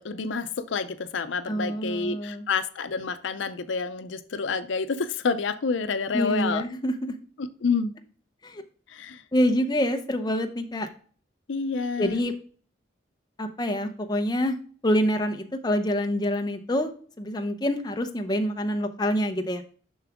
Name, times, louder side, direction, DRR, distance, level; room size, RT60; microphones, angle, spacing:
voice 1, 0.0-6.6 7.6-7.9 8.9-9.2 11.5-12.2, left 5 dB, 85° left, 12 dB, 0.5 m, -28 dB
voice 2, 1.5-2.5 6.1-7.1 8.4-8.6 9.3-10.9 12.0-12.3 13.4-14.6 14.8-19.7, equal, 20° left, 5 dB, 0.7 m, -26 dB
7.2 x 5.9 x 3.5 m, 0.43 s
head